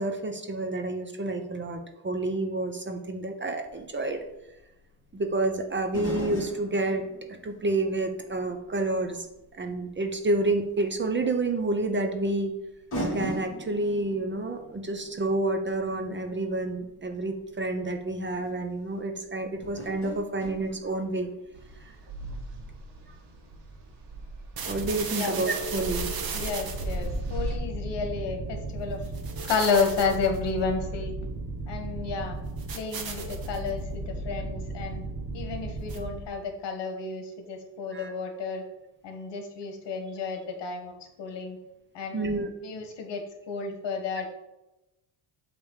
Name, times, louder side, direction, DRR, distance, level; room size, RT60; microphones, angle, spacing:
voice 1, 0.0-4.2 5.1-7.0 7.4-9.3 9.6-12.5 13.1-21.3 21.8-21.9 24.7-26.1 37.9-38.1 42.1-42.5, right 2 dB, 25° right, 6 dB, 0.8 m, -29 dB
sound 1, 3.7-3.8 5.9-8.9 9.3-9.4 10.9-11.0 12.3-12.4 12.9-17.0 18.0-18.1 18.4-18.6 19.6-21.5 21.8-21.9, equal, 25° left, 2.8 m, -38 dB
sound 2, 21.5-27.6, right 2 dB, 70° right, 1.9 m, -38 dB
sound 3, 24.6-36.4, right 3 dB, 50° right, 1.3 m, -35 dB
voice 2, 25.1-25.4 26.3-29.1 29.4-31.1 31.7-32.4 32.7-35.0 35.3-38.6 39.0-41.6 41.9-44.3, left 4 dB, 65° left, 3 dB, 1.8 m, -31 dB
8.4 x 3.4 x 6.5 m, 0.96 s
cardioid pair, 125°, 45 cm